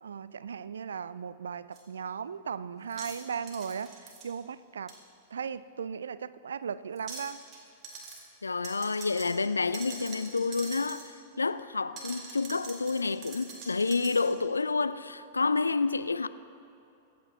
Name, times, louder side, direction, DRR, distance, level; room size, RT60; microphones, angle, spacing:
voice 1, 0.0-4.9 5.3-7.4, right 6 dB, 65° right, 0.4 m, -37 dB
sound 1, 1.7-1.8 2.9-4.3 4.9-5.0 7.0-7.6 7.8-8.2 8.6-11.1 12.0-14.3, right 4 dB, 30° right, 2.8 m, -44 dB
voice 2, 8.4-16.3, left 4 dB, 80° left, 0.4 m, -29 dB
24.5 x 8.5 x 4.1 m
figure-of-eight pair, 95°, 0 cm